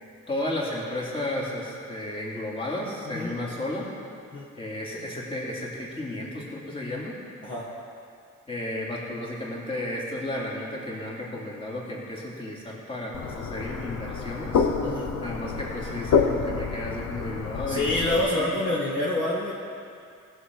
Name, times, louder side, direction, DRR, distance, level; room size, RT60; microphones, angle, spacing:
voice 1, 0.3-3.9 4.6-7.1 8.5-14.7 15.2-18.0 18.3-18.5, left 1 dB, 20° left, -5 dB, 3.0 m, -33 dB
voice 2, 3.0-3.3 4.3-4.4 7.4-7.6 14.8-15.1 17.7-19.5, left 1 dB, 40° left, -7 dB, 1.8 m, -27 dB
sound 1, 13.1-18.2, left 6 dB, 60° left, 0.9 m, -28 dB
15.5 x 7.0 x 4.7 m, 2.4 s
cardioid pair, 90°, 30 cm